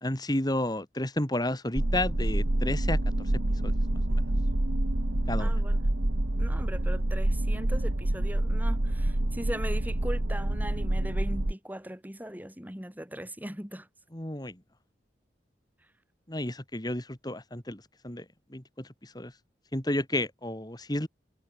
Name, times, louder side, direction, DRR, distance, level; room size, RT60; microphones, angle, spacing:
voice 1, 0.0-3.7 4.1-4.2 5.3-5.5 14.1-14.6 16.3-18.2 18.5-19.3 19.7-21.1, left 1 dB, 20° left, 2.6 m, -32 dB
sound 1, 1.8-11.5, right 1 dB, 80° right, 1.8 m, -27 dB
voice 2, 5.4-5.9 6.4-13.9, equal, 10° right, 5.2 m, -39 dB
head